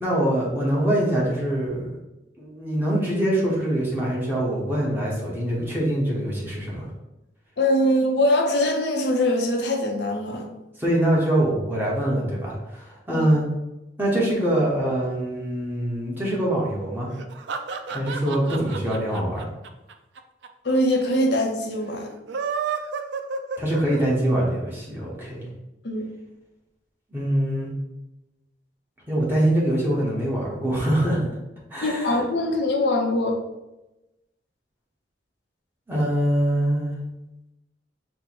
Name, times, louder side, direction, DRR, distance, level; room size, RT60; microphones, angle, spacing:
voice 1, 0.0-2.0 2.4-6.9 10.8-13.4 14.0-17.1 17.9-19.5 23.6-25.5 27.1-27.7 29.1-31.3 31.7-32.2 35.9-36.9, right 1 dB, 10° right, -5 dB, 1.0 m, -24 dB
voice 2, 7.6-10.5 13.1-13.3 20.6-22.1 25.8-26.0 31.8-33.4, left 1 dB, 65° left, 2 dB, 0.6 m, -22 dB
sound 1, 17.1-20.5 20.8-20.9 21.1-21.2 22.1-24.3, right 5 dB, 75° right, 0.4 m, -31 dB
4.4 x 2.1 x 4.3 m, 0.96 s
head